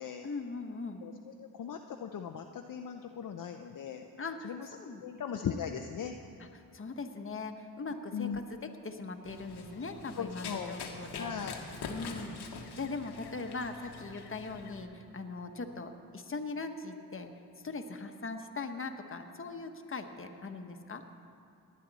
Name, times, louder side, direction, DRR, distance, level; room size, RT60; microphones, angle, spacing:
voice 1, 0.2-1.0 4.2-5.0 6.4-11.3 11.9-12.4 12.8-17.3 17.6-21.0, left 3 dB, 30° left, 6 dB, 1.2 m, -40 dB
voice 2, 1.0-4.0 4.4-4.7 5.0-6.1 8.1-8.4 10.2-10.7 11.2-11.6, left 7 dB, 55° left, 4 dB, 0.7 m, -38 dB
Run, 9.2-14.8, left 4 dB, 85° left, 1.3 m, -45 dB
19.5 x 9.4 x 4.1 m, 2.4 s
cardioid pair, 60°, 39 cm